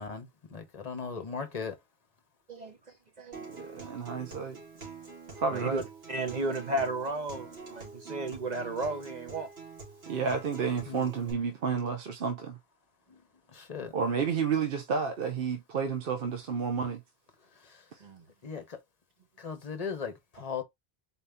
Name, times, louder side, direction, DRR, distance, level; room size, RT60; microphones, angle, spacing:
voice 1, 0.0-1.8 10.9-11.1 13.1-13.2 13.5-13.9 17.6-17.8 18.4-18.8 19.4-20.6, left 5 dB, 40° left, 0.9 m, -38 dB
Acoustic guitar, 3.3-11.3, right 4 dB, 85° right, 2.2 m, -46 dB
voice 2, 3.5-4.6 5.4-5.9 10.1-12.6 13.9-17.0 17.9-18.0, right 6 dB, 65° right, 0.9 m, -31 dB
voice 3, 5.5-5.8 6.1-9.5 18.0-18.2, right 2 dB, 45° right, 1.1 m, -33 dB
4.2 x 2.7 x 3.4 m
omnidirectional pair, 1.0 m